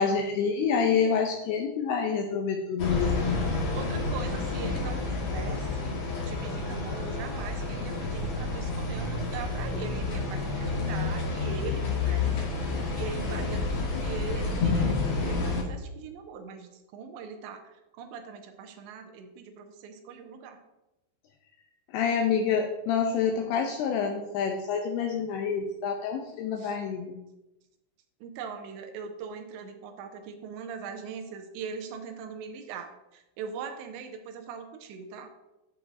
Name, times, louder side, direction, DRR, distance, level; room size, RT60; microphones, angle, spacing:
voice 1, 0.0-3.5 21.9-27.2, left 6 dB, 80° left, 3 dB, 2.4 m, -27 dB
sound 1, 2.8-15.6, left 3 dB, 65° left, 1.7 m, -29 dB
voice 2, 3.7-20.6 26.6-26.8 28.2-35.3, right 6 dB, 85° right, 5 dB, 2.8 m, -41 dB
8.6 x 7.8 x 2.6 m, 0.96 s
omnidirectional pair, 5.3 m